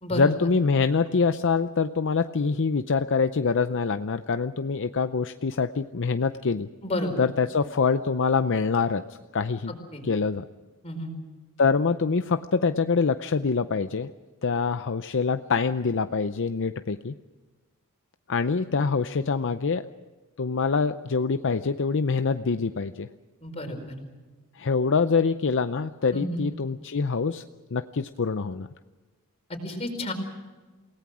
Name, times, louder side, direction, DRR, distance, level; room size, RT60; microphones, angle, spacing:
voice 1, 0.1-6.7 7.2-9.8 10.0-10.4 11.6-14.1 14.4-17.1 18.3-19.8 20.4-23.1 24.6-27.5 27.7-28.7, left 5 dB, 55° left, 10 dB, 0.6 m, -25 dB
voice 2, 9.7-10.0 10.8-11.1 23.4-23.9 26.1-26.4 29.6-30.1, left 1 dB, 30° left, 3 dB, 4.7 m, -31 dB
28.5 x 18.5 x 6.2 m, 1.3 s
head